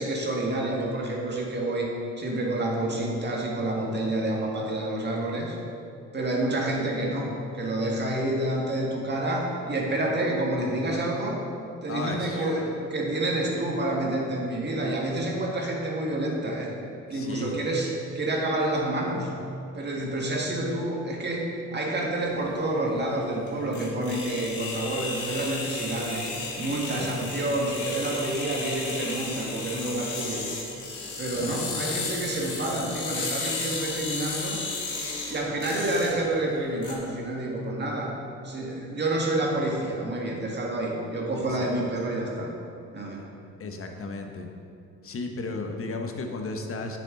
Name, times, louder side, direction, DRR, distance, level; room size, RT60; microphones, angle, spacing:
voice 1, 0.0-1.9 2.2-5.6 6.1-11.4 11.8-16.7 17.1-17.9 18.2-19.3 19.7-21.5 21.7-26.3 26.6-30.4 31.2-34.6 35.3-38.2 38.4-42.5 42.9-43.2, right 1 dB, 35° right, -2 dB, 1.8 m, -28 dB
voice 2, 3.7-4.1 6.5-6.6 11.9-12.4 17.1-17.6 27.0-27.1 31.3-31.7 41.3-41.7 43.6-44.5 45.0-47.0, left 3 dB, 45° left, 4 dB, 1.1 m, -35 dB
sound 1, 22.2-36.9, left 3 dB, 75° left, 1.8 m, -34 dB
9.7 x 6.8 x 3.8 m, 2.6 s
cardioid pair, 90°, 30 cm